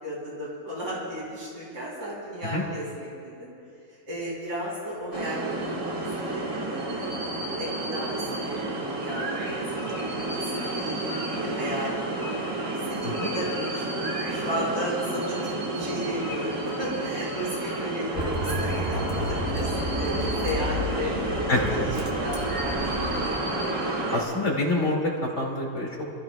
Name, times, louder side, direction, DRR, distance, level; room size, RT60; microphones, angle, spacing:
voice 1, 0.0-3.5 3.9-11.0 11.4-12.4 12.9-21.6 21.9-23.1, equal, 85° right, -6 dB, 4.2 m, -35 dB
sound 1, 5.1-24.2, right 2 dB, 60° right, 2.0 m, -30 dB
Bus, 18.1-23.3, equal, 40° right, 1.8 m, -31 dB
voice 2, 21.5-21.8 24.1-26.0, left 2 dB, 50° left, -2 dB, 2.8 m, -26 dB
28.0 x 14.0 x 2.3 m, 2.6 s
omnidirectional pair, 1.6 m